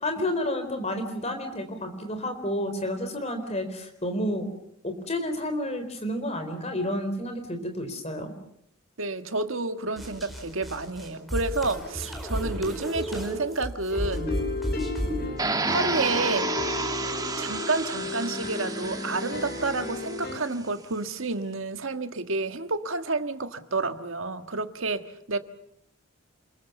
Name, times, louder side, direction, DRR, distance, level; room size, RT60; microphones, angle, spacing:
voice 1, 0.0-4.5 4.8-8.3, left 1 dB, 30° left, 7 dB, 4.1 m, -30 dB
voice 2, 9.0-14.4 15.0-16.5 17.4-25.4, right 3 dB, 65° right, 9 dB, 1.6 m, -30 dB
sound 1, 10.0-15.3, equal, ahead, 4.5 m, -32 dB
sound 2, 13.9-20.4, left 4 dB, 45° left, 3.4 m, -34 dB
sound 3, 15.4-20.4, right 3 dB, 15° right, 1.3 m, -31 dB
28.5 x 22.0 x 7.1 m, 0.70 s
head